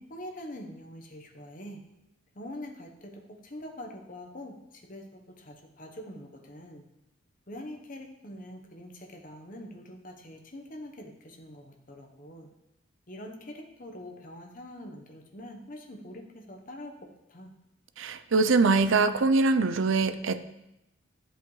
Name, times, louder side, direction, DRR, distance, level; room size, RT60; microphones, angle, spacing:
voice 1, 0.0-1.8 2.4-3.1 3.4-4.6 4.9-6.8 7.5-12.5 13.1-16.9 17.3-17.5, left 1 dB, 40° left, 1 dB, 1.1 m, -44 dB
voice 2, 18.0-20.4, right 3 dB, 70° right, 12 dB, 0.5 m, -23 dB
12.0 x 7.9 x 3.2 m, 0.89 s
head